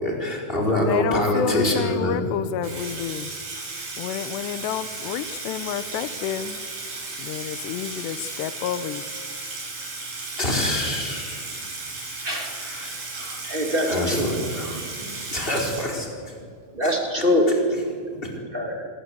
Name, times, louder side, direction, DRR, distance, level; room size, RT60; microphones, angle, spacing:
voice 1, 0.0-2.2 10.4-11.5 12.4-13.4 13.9-14.8 15.3-16.1 16.8-16.9, left 1 dB, 10° left, 0 dB, 3.9 m, -25 dB
voice 2, 0.8-3.3 4.0-6.6 7.2-9.1, left 10 dB, 80° left, 13 dB, 2.6 m, -30 dB
Water tap faucet / Sink (filling or washing), 2.6-16.4, right 3 dB, 55° right, 7.5 m, -35 dB
voice 3, 13.4-14.3 16.7-17.4 18.5-18.9, left 1 dB, 20° right, 2 dB, 1.5 m, -23 dB
26.0 x 21.0 x 8.0 m, 2.2 s
omnidirectional pair, 5.7 m